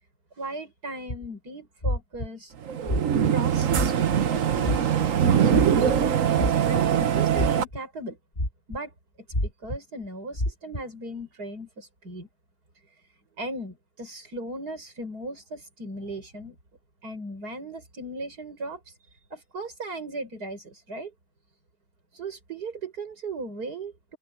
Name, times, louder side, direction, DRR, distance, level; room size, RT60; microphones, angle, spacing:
voice 1, 0.4-2.5 3.3-8.2 8.7-8.9 9.4-12.3 13.4-16.6 17.0-18.8 19.3-21.1 22.1-24.2, right 2 dB, 75° right, 6.7 m, -37 dB
sound 1, 1.1-1.3 1.8-2.3 2.8-3.3 3.7-4.2 4.6-5.1 5.5-5.9 6.4-7.0 7.4-7.8 8.4-8.8 9.3-9.8 10.3-10.8, left 1 dB, 30° left, 7.7 m, -27 dB
sound 2, 2.6-7.6, right 8 dB, 55° right, 1.3 m, -22 dB
open air
omnidirectional pair, 1.7 m